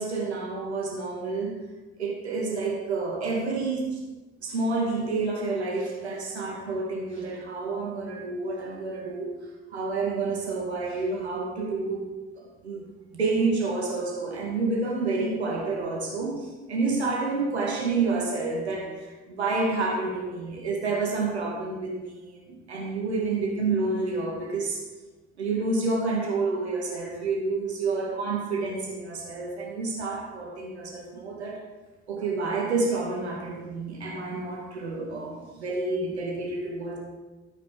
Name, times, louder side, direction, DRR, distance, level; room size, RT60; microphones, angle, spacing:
voice 1, 0.0-1.6 2.0-4.0 4.4-9.3 9.7-12.0 12.4-12.9 13.1-24.8 25.4-31.6 32.1-37.0, right 3 dB, 85° right, -1 dB, 2.1 m, -29 dB
13.0 x 8.2 x 5.0 m, 1.2 s
figure-of-eight pair, 50°, 32 cm